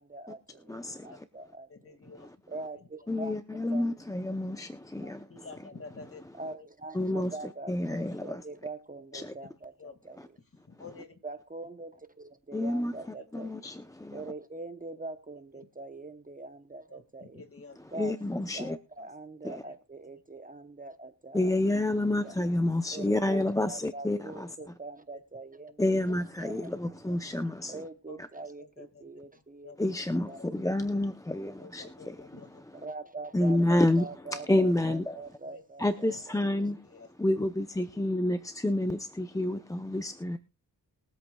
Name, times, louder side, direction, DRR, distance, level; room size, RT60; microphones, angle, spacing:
voice 1, 0.0-2.0 2.5-3.4 3.7-3.8 5.0-5.1 6.4-10.2 11.2-13.6 14.1-17.4 17.9-18.2 18.5-21.6 22.2-22.3 22.9-26.0 26.4-26.7 27.7-30.0 30.3-30.4 32.8-36.7, right 3 dB, 20° right, 0.9 m, -43 dB
voice 2, 0.7-1.2 3.1-5.3 6.9-7.4 7.7-8.4 9.1-9.3 12.5-12.9 13.3-14.2 17.9-18.8 19.4-19.6 21.3-24.5 25.8-27.8 29.8-32.2 33.3-35.2 35.8-36.8 37.2-40.4, left 1 dB, 10° left, 0.7 m, -29 dB
voice 3, 1.7-2.3 3.9-4.0 5.3-6.2 9.4-9.5 9.8-9.9 10.5-11.2 13.2-13.3 15.5-15.7 16.9-17.8 19.6-19.7 22.4-22.7 23.7-23.8 25.1-25.2 27.1-27.2 28.1-28.2 28.6-29.8 30.4-30.5 31.6-32.6 35.4-35.6 36.1-36.2 36.7-37.1, left 4 dB, 35° left, 2.1 m, -50 dB
22.5 x 8.0 x 2.3 m
cardioid pair, 75°, 38 cm